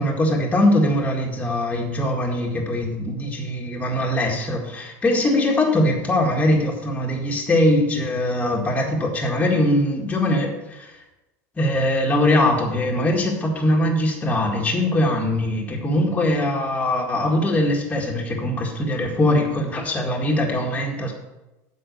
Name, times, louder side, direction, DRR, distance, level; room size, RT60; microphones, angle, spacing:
voice 1, 0.0-10.9 11.6-21.1, left 1 dB, 15° left, -1 dB, 1.8 m, -21 dB
8.0 x 5.6 x 6.6 m, 0.99 s
supercardioid pair, 135°, 8 cm